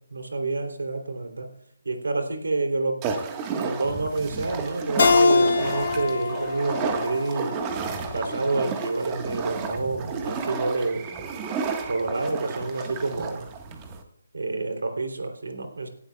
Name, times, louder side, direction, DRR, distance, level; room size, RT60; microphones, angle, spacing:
voice 1, 0.1-1.5 1.8-3.0 3.6-7.5 8.1-11.1 11.9-13.5 14.3-15.9, right 3 dB, 85° right, 5 dB, 3.1 m, -28 dB
sound 1, 3.0-14.0, right 5 dB, 20° right, 1.4 m, -32 dB
Keyboard (musical), 5.0-8.2, left 4 dB, 55° left, 1.1 m, -23 dB
19.0 x 11.5 x 2.3 m, 0.69 s
hypercardioid pair, 165°, 0 cm